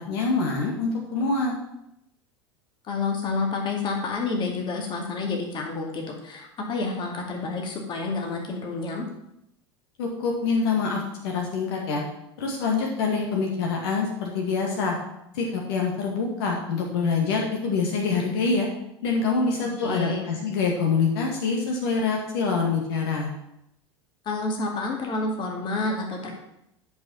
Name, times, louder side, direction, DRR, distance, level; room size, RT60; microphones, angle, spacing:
voice 1, 0.1-1.5 10.0-12.0 12.4-15.0 15.3-18.7 19.0-23.3, left 4 dB, 60° left, -1 dB, 1.9 m, -25 dB
voice 2, 2.8-9.1 19.6-20.3 24.3-26.3, left 3 dB, 35° left, 1 dB, 2.2 m, -29 dB
10.5 x 5.4 x 5.6 m, 0.81 s
figure-of-eight pair, 80°, 14 cm